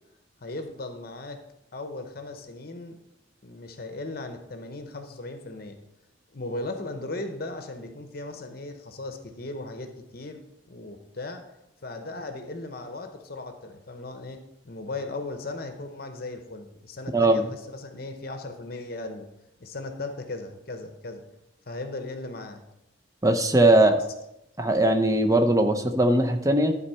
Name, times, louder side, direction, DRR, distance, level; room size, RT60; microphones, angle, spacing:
voice 1, 0.4-1.4 1.7-3.0 3.4-5.8 6.3-10.4 10.7-11.4 11.8-14.4 14.6-19.3 19.6-21.2 21.7-22.6 23.8-24.0, left 2 dB, 50° left, 6 dB, 0.8 m, -37 dB
voice 2, 17.1-17.5 23.2-24.0 24.6-26.8, right 1 dB, 15° right, 6 dB, 0.6 m, -20 dB
12.0 x 4.2 x 5.5 m, 0.89 s
head